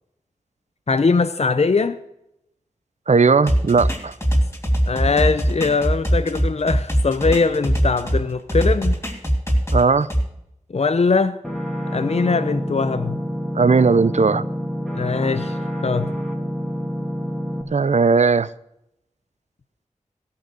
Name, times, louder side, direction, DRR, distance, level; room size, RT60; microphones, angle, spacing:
voice 1, 0.9-2.0 4.9-9.0 10.7-11.4 11.9-13.2 14.9-16.1, left 4 dB, 55° left, 0.6 m, -21 dB
voice 2, 3.1-4.1 9.7-10.1 13.5-14.5 17.7-18.5, right 4 dB, 65° right, 0.6 m, -17 dB
sound 1, 3.5-8.2 8.5-10.2, equal, 20° left, 3.7 m, -20 dB
sound 2, 11.4-17.6, equal, ahead, 2.5 m, -27 dB
16.0 x 5.8 x 8.1 m
wide cardioid pair, 60°, 13 cm